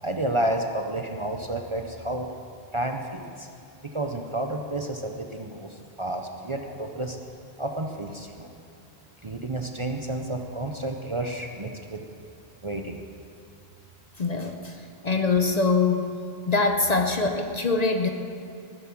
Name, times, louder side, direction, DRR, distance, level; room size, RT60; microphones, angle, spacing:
voice 1, 0.0-2.3 2.7-3.5 3.9-7.2 7.6-8.5 9.2-12.0 12.6-13.0, right 1 dB, 30° right, 3 dB, 0.7 m, -30 dB
voice 2, 14.2-14.8 15.0-16.1 16.5-18.1, left 3 dB, 40° left, 5 dB, 0.8 m, -23 dB
19.5 x 7.2 x 6.0 m, 2.6 s
omnidirectional pair, 1.1 m